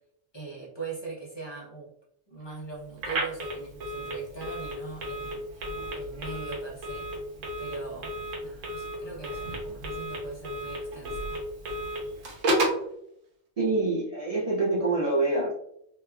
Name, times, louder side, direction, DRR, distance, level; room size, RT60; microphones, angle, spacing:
voice 1, 0.3-1.9 2.3-5.7 5.9-7.1 7.6-11.3, right 4 dB, 25° left, -5 dB, 0.6 m, -41 dB
Telephone, 3.0-12.9, right 1 dB, 85° right, 1.2 m, -33 dB
voice 2, 13.6-15.5, right 2 dB, 65° right, -6 dB, 0.3 m, -26 dB
2.9 x 2.3 x 2.2 m, 0.73 s
omnidirectional pair, 1.3 m